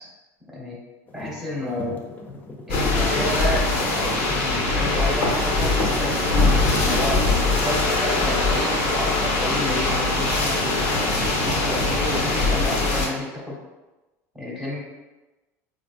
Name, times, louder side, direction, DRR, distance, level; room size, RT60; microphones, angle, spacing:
voice 1, 0.5-0.8 1.1-2.0 2.7-6.3 6.6-7.2 7.6-10.8 11.4-13.5 14.3-14.8, left 1 dB, 5° right, -5 dB, 1.0 m, -31 dB
sound 1, 1.1-13.0, left 2 dB, 20° left, 0.5 m, -40 dB
sound 2, 2.7-13.1, left 3 dB, 70° left, 1.1 m, -22 dB
sound 3, 4.7-11.3, right 4 dB, 50° right, 0.4 m, -40 dB
4.6 x 2.4 x 2.4 m, 1.1 s
supercardioid pair, 115°, 8 cm